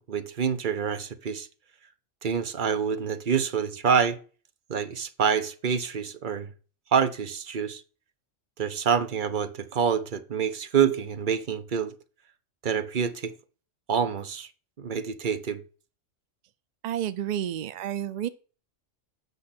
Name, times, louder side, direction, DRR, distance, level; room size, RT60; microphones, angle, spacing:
voice 1, 0.0-1.5 2.2-4.2 4.7-6.5 6.9-7.8 8.6-11.9 12.6-13.3 13.9-14.5 14.8-15.6, right 7 dB, 45° right, 0.9 m, -27 dB
voice 2, 16.8-18.3, right 10 dB, 70° right, 0.4 m, -30 dB
8.2 x 6.4 x 4.3 m
omnidirectional pair, 1.3 m